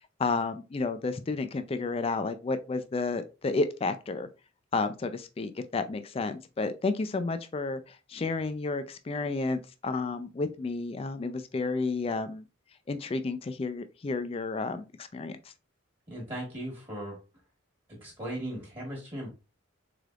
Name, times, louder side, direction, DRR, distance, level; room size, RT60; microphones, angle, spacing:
voice 1, 0.0-4.3 4.7-12.4 12.9-15.4, left 3 dB, 30° left, 0.3 m, -31 dB
voice 2, 16.1-17.2 17.9-19.3, right 1 dB, 25° right, 1.2 m, -37 dB
3.8 x 3.3 x 2.3 m
head